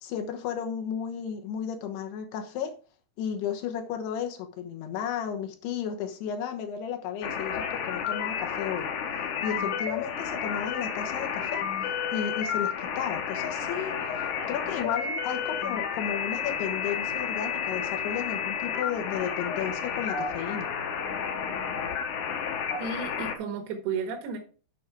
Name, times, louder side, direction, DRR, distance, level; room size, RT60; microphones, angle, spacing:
voice 1, 0.0-2.7 3.2-8.9 9.4-11.6 12.1-13.9 14.5-20.7, left 8 dB, 80° left, 3.2 m, -33 dB
sound 1, 7.2-23.4, left 7 dB, 65° left, 2.3 m, -31 dB
voice 2, 22.8-24.4, right 5 dB, 80° right, 3.3 m, -33 dB
9.3 x 5.4 x 4.6 m
omnidirectional pair, 4.7 m